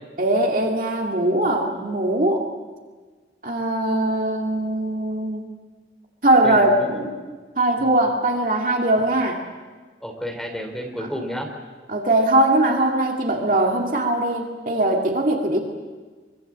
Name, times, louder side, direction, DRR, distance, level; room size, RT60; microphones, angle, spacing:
voice 1, 0.2-2.4 3.4-5.4 6.2-6.8 7.6-9.4 11.9-15.6, right 1 dB, 45° right, 1 dB, 2.4 m, -20 dB
voice 2, 6.4-7.1 7.8-8.0 10.0-11.5, equal, ahead, 1 dB, 3.8 m, -31 dB
24.5 x 23.5 x 7.6 m, 1.4 s
head